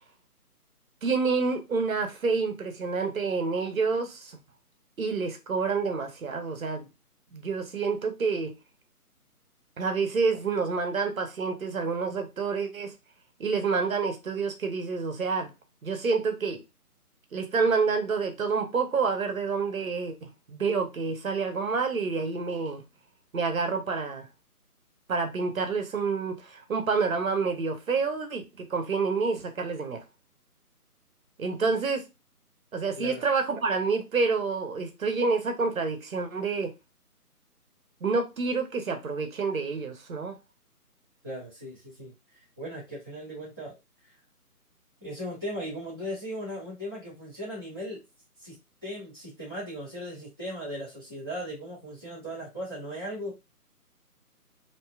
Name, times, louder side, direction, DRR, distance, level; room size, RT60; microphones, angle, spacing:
voice 1, 1.0-4.4 5.0-6.9 7.3-8.6 9.8-12.9 13.4-15.5 15.8-16.6 17.3-22.8 23.3-24.3 25.1-30.0 31.4-32.1 32.7-36.7 38.0-40.3, right 4 dB, 60° right, 0.7 m, -28 dB
voice 2, 41.2-42.1 42.6-43.7 45.0-48.0 48.4-48.5 48.8-53.3, equal, 15° left, 0.7 m, -37 dB
2.6 x 2.2 x 2.2 m
figure-of-eight pair, 155°, 46 cm